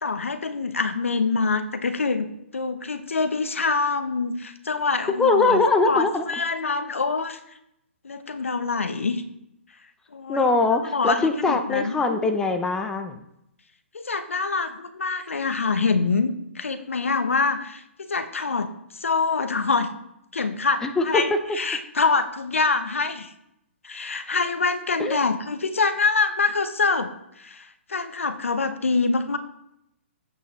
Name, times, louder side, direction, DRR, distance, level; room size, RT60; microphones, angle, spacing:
voice 1, 0.0-7.4 8.0-9.2 10.1-10.5 10.9-12.0 13.9-19.9 20.3-23.3 23.8-27.1 27.4-29.4, left 4 dB, 80° left, 10 dB, 0.9 m, -25 dB
voice 2, 5.2-6.2 10.3-13.2 20.8-21.2 25.0-25.2, left 3 dB, 10° left, 6 dB, 0.7 m, -22 dB
9.1 x 8.3 x 3.2 m, 0.79 s
hypercardioid pair, 135°, 7 cm